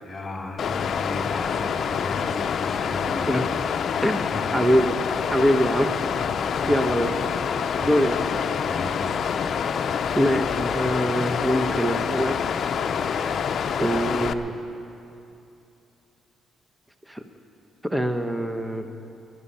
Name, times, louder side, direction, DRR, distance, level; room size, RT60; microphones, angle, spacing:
voice 1, 0.0-3.6 4.3-4.7 6.3-6.8 7.8-8.0 8.7-9.3, left 2 dB, 25° left, 1 dB, 2.6 m, -35 dB
Water, 0.6-14.3, left 7 dB, 55° left, 0.6 m, -26 dB
voice 2, 4.5-5.0 5.3-5.9 6.7-7.1 7.8-8.2 10.1-12.3 13.8-14.5 17.1-17.2 17.8-18.9, equal, 5° right, 7 dB, 0.9 m, -23 dB
20.0 x 11.5 x 5.6 m, 2.8 s
cardioid pair, 90°, 0 cm